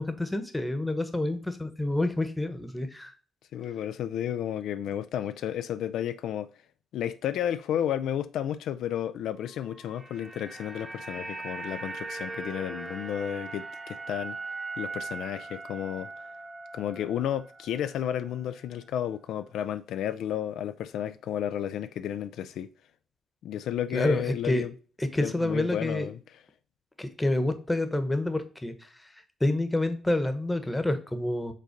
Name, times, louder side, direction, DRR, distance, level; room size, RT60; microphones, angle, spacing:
voice 1, 0.0-3.1 23.9-24.6 25.0-26.1 27.0-28.9 29.4-31.5, left 1 dB, 10° left, 1.0 m, -28 dB
voice 2, 3.5-6.5 6.9-14.4 14.8-16.1 16.7-22.7 23.4-24.7 25.2-26.4, left 10 dB, 80° left, 0.3 m, -32 dB
sound 1, 9.7-18.0 18.3-18.4, right 3 dB, 20° right, 1.0 m, -40 dB
5.3 x 3.8 x 5.1 m
cardioid pair, 90°, 0 cm